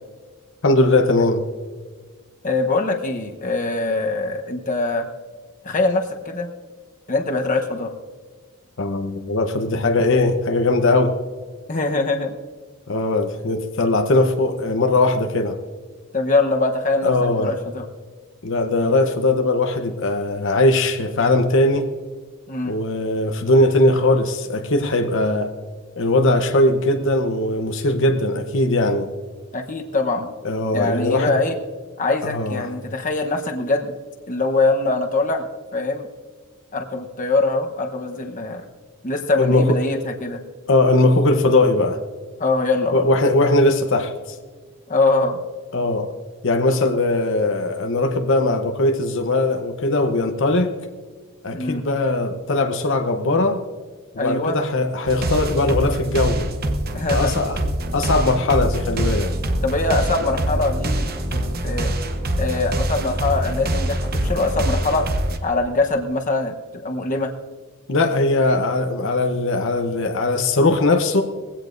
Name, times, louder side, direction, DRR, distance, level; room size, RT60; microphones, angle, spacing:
voice 1, 0.6-1.4 8.8-11.1 12.9-15.6 17.0-17.6 18.4-21.9 22.6-25.5 26.0-29.1 30.4-31.3 32.2-32.7 39.4-39.8 40.7-42.0 42.9-44.4 45.7-46.1 46.4-50.7 51.4-53.6 54.1-56.5 57.1-57.6 57.9-59.3 67.9-71.2, left 2 dB, 60° left, 5 dB, 0.9 m, -19 dB
voice 2, 2.4-5.1 5.6-6.5 7.1-7.9 11.7-12.3 16.1-17.9 22.5-22.8 29.5-30.3 30.7-31.6 32.0-33.9 34.3-36.1 36.7-38.6 39.0-40.4 42.4-43.0 44.9-45.4 51.5-51.8 54.2-54.6 56.9-57.3 59.6-61.9 62.4-65.1 65.4-67.3, left 3 dB, 35° left, 4 dB, 1.0 m, -23 dB
sound 1, 55.1-65.4, right 1 dB, 45° right, 0.9 m, -24 dB
20.0 x 16.0 x 2.6 m, 1.5 s
head